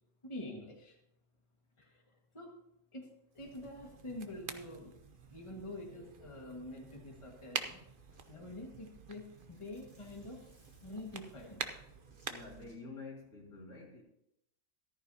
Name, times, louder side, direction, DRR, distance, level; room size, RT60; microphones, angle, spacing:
voice 1, 0.2-1.0 1.8-2.5 2.9-4.9 5.3-7.8 8.3-10.4 10.8-11.8, left 1 dB, 20° left, 0 dB, 1.8 m, -46 dB
sound 1, 3.3-12.7, right 5 dB, 45° right, 0.9 m, -47 dB
Zipper (clothing), 8.1-12.8, right 1 dB, 75° right, 4.2 m, -68 dB
voice 2, 12.2-14.0, left 3 dB, 60° left, -2 dB, 2.9 m, -48 dB
14.0 x 14.0 x 2.8 m, 0.81 s
omnidirectional pair, 1.4 m